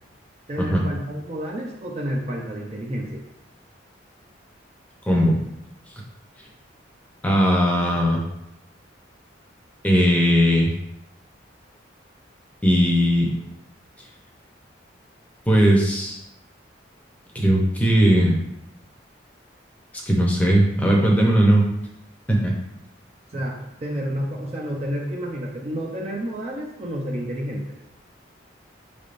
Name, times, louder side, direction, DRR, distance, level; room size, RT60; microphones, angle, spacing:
voice 1, 0.5-3.2 23.3-27.7, equal, 35° right, -1 dB, 0.5 m, -30 dB
voice 2, 5.1-5.4 7.2-8.2 9.8-10.7 12.6-13.3 15.5-16.2 17.3-18.3 20.1-21.7 22.3-22.6, equal, 10° left, -2 dB, 0.7 m, -18 dB
6.1 x 3.4 x 2.5 m, 0.85 s
head